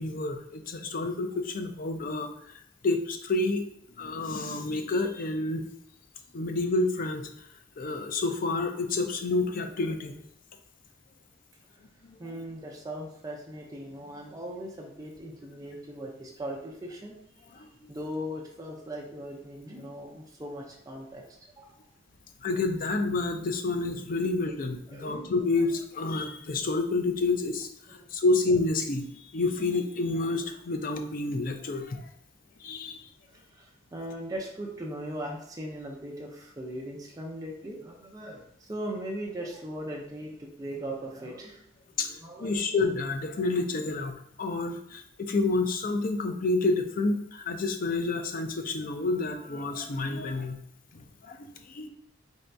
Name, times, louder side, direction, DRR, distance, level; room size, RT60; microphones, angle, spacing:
voice 1, 0.0-2.3 2.8-3.6 4.0-5.7 6.3-7.2 7.8-10.1 12.0-12.2 17.5-17.9 22.4-32.0 32.6-33.0 42.0-42.1 42.4-50.6 50.9-51.9, left 3 dB, 45° left, 6 dB, 0.5 m, -29 dB
voice 2, 12.2-21.2 21.6-21.7 24.2-24.3 24.9-25.3 27.9-28.0 33.3-41.6 42.0-42.6, right 1 dB, 20° right, -1 dB, 0.5 m, -39 dB
3.9 x 2.7 x 3.4 m, 0.71 s
head